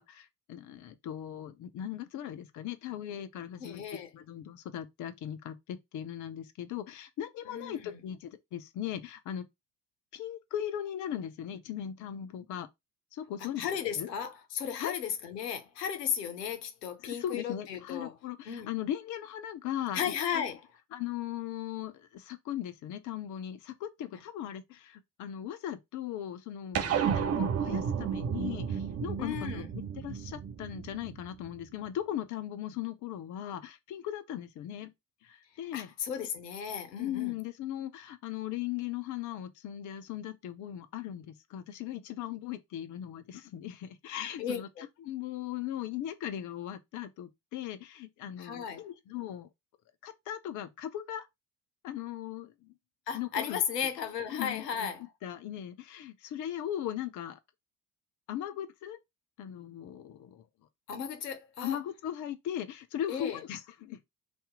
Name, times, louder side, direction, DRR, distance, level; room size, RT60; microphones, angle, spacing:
voice 1, 0.0-9.5 10.1-12.7 13.1-13.7 14.0-14.1 14.8-14.9 17.0-20.4 20.9-29.6 30.0-34.9 35.2-35.9 37.0-44.7 45.0-49.5 50.0-51.3 51.8-52.7 53.1-53.6 54.3-54.9 55.2-57.4 58.3-59.0 59.4-60.4 61.6-64.0, left 11 dB, 40° left, 0.5 m, -38 dB
voice 2, 3.6-4.1 7.5-8.0 13.6-18.1 18.5-18.7 19.9-20.6 29.2-29.7 35.7-37.4 44.4-44.9 48.4-48.9 53.1-55.0 60.9-61.8 63.1-63.4, left 8 dB, 80° left, 0.7 m, -35 dB
sound 1, 26.7-31.5, right 7 dB, 30° right, 0.6 m, -32 dB
2.7 x 2.5 x 3.5 m
figure-of-eight pair, 50°, 48 cm